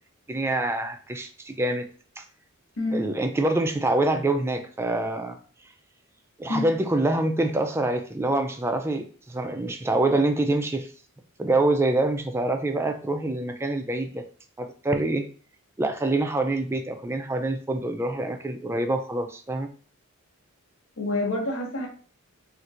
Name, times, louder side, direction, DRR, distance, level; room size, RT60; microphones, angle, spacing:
voice 1, 0.3-1.8 2.2-2.3 2.9-5.4 6.4-10.9 11.4-14.2 14.6-15.2 15.8-19.7, right 2 dB, 10° right, 6 dB, 0.3 m, -25 dB
voice 2, 2.8-3.1 6.5-6.7 21.0-21.9, left 2 dB, 65° left, 1 dB, 0.8 m, -27 dB
4.3 x 2.5 x 2.5 m, 0.41 s
head